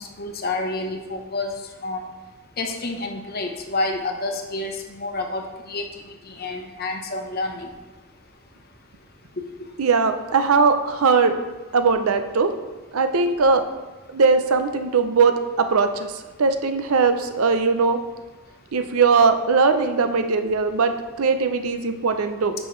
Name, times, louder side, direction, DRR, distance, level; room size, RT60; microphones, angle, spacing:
voice 1, 0.0-1.5 1.8-2.0 2.6-5.8 6.3-7.7, left 2 dB, 45° left, 3 dB, 0.9 m, -29 dB
voice 2, 9.8-11.3 11.7-12.5 12.9-13.6 14.1-16.1 16.4-18.0 18.7-22.5, right 4 dB, 75° right, 8 dB, 0.6 m, -20 dB
10.0 x 5.5 x 3.2 m, 1.2 s
head